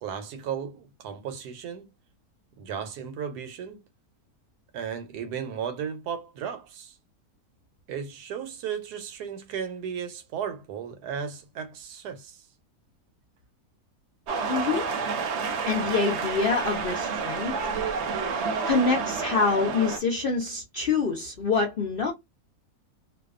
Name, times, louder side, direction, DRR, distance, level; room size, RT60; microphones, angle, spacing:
voice 1, 0.0-1.9 2.6-3.8 4.7-7.0 7.9-12.4, right 7 dB, 90° right, 1.2 m, -35 dB
sound 1, 14.3-20.0, right 5 dB, 60° right, 0.8 m, -29 dB
voice 2, 14.5-14.9 15.7-17.5 18.6-22.1, left 4 dB, 70° left, 0.5 m, -26 dB
2.6 x 2.2 x 2.3 m
omnidirectional pair, 1.6 m